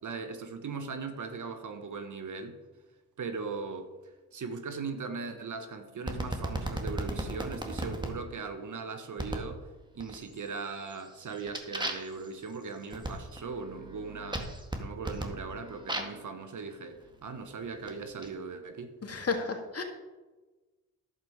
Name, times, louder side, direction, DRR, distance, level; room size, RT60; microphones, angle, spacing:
voice 1, 0.0-2.6 3.2-3.9 4.3-9.7 9.9-14.5 14.8-18.9, right 4 dB, 55° right, 8 dB, 1.3 m, -39 dB
sound 1, 6.1-8.1 9.2-9.5 10.0-10.5 10.9-16.3 17.0-18.3, right 1 dB, 10° right, 2.0 m, -37 dB
voice 2, 19.0-19.8, left 4 dB, 40° left, 4 dB, 1.9 m, -32 dB
11.0 x 7.4 x 4.7 m, 1.2 s
supercardioid pair, 45°, 37 cm